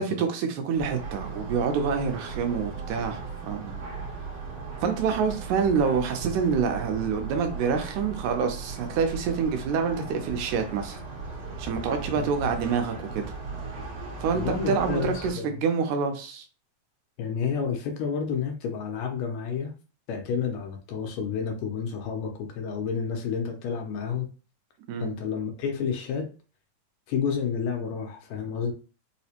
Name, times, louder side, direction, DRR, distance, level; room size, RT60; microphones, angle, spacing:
voice 1, 0.0-3.8 4.8-11.0 11.6-13.3 14.2-16.4 24.9-25.1, right 6 dB, 80° right, 2.0 m, -27 dB
sound 1, 0.8-15.3, right 4 dB, 65° right, 1.5 m, -37 dB
voice 2, 12.1-12.5 14.3-15.6 17.2-19.7 20.1-24.3 25.0-26.3 27.1-28.7, left 6 dB, 75° left, 1.8 m, -30 dB
4.8 x 2.1 x 2.8 m
omnidirectional pair, 3.4 m